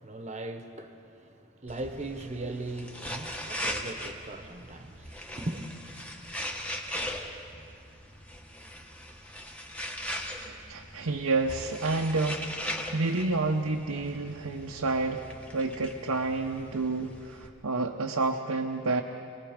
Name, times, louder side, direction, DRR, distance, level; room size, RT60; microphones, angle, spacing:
voice 1, 0.0-5.7, right 2 dB, 30° right, 6 dB, 1.1 m, -39 dB
sound 1, 1.7-17.5, left 1 dB, 5° left, 1.2 m, -40 dB
voice 2, 10.4-15.3 15.5-19.0, right 3 dB, 85° right, 2 dB, 0.9 m, -29 dB
27.0 x 20.0 x 5.2 m, 2.6 s
head